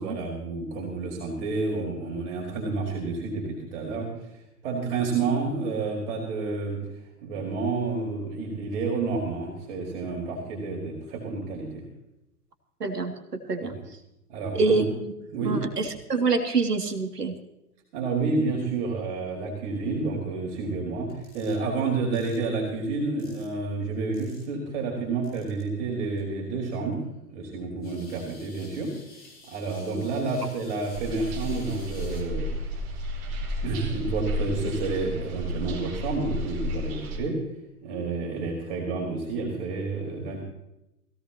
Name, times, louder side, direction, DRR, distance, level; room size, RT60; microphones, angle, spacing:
voice 1, 0.0-4.1 4.6-6.8 7.2-11.7 13.6-13.8 14.3-14.9 15.3-15.7 17.9-21.1 21.3-27.0 27.3-28.9 29.5-32.5 33.6-37.4 37.8-40.4, right 3 dB, 50° right, -2 dB, 4.8 m, -29 dB
voice 2, 12.8-13.7 14.5-15.1 15.4-17.4 29.9-30.0, right 4 dB, 85° right, 5 dB, 2.5 m, -26 dB
sound 1, 21.1-21.6 22.1-22.4 23.2-23.6 24.1-24.5 25.2-25.6 26.2-26.3 27.8-32.2, left 2 dB, 20° left, 6.4 m, -51 dB
sound 2, 30.9-37.2, left 1 dB, 30° right, 4.6 m, -32 dB
21.0 x 17.0 x 2.9 m, 0.90 s
figure-of-eight pair, 115°, 46 cm